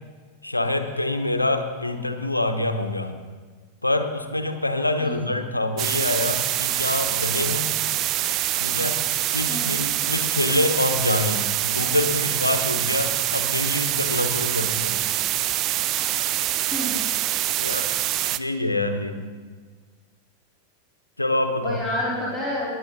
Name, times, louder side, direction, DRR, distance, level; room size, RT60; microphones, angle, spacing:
voice 1, 0.4-3.1 3.8-7.7 8.6-9.0 9.3-15.0 17.6-17.9 18.3-19.2 21.2-21.8, left 2 dB, 85° left, 7 dB, 1.0 m, -25 dB
sound 1, 5.8-18.4, right 13 dB, 35° right, 0.5 m, -25 dB
voice 2, 21.6-22.7, equal, ahead, -8 dB, 3.9 m, -29 dB
21.0 x 9.7 x 4.0 m, 1.5 s
figure-of-eight pair, 90°, 0 cm